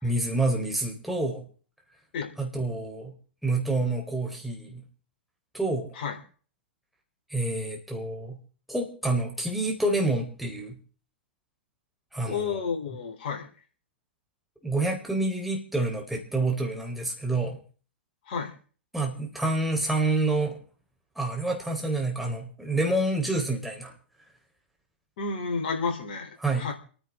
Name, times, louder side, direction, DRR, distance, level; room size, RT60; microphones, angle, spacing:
voice 1, 0.0-1.4 2.4-3.1 3.4-4.8 5.5-5.9 7.3-8.4 8.7-10.8 12.1-12.6 14.6-17.6 18.9-20.6 21.2-23.9 26.4-26.7, right 2 dB, ahead, 0 dB, 4.1 m, -28 dB
voice 2, 12.3-13.5 18.3-18.5 25.2-26.7, left 5 dB, 60° left, 4 dB, 3.4 m, -31 dB
30.0 x 10.0 x 3.7 m, 0.41 s
hypercardioid pair, 105°, 6 cm